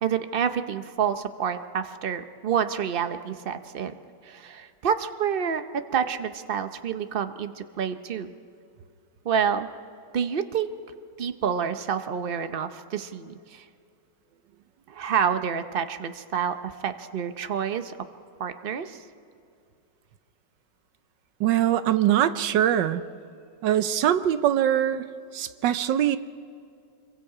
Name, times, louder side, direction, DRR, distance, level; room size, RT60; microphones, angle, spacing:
voice 1, 0.0-3.9 4.2-8.3 9.2-9.7 10.1-10.7 11.2-13.6 14.9-17.9 18.4-19.0 25.1-25.3, right 7 dB, 65° right, 9 dB, 0.5 m, -28 dB
voice 2, 21.4-23.0 23.6-25.0 25.3-26.2, right 11 dB, 80° right, 12 dB, 1.4 m, -22 dB
26.0 x 23.0 x 4.9 m, 2.3 s
omnidirectional pair, 2.0 m